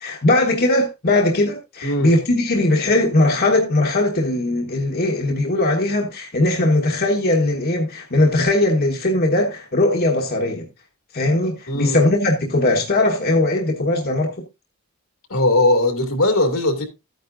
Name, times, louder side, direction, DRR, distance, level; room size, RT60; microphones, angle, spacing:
voice 1, 0.0-10.7 11.1-14.3, left 2 dB, 45° left, 1.3 m, -19 dB
voice 2, 11.7-12.0 15.3-16.8, left 1 dB, 75° left, 2.5 m, -19 dB
13.0 x 9.4 x 2.6 m
head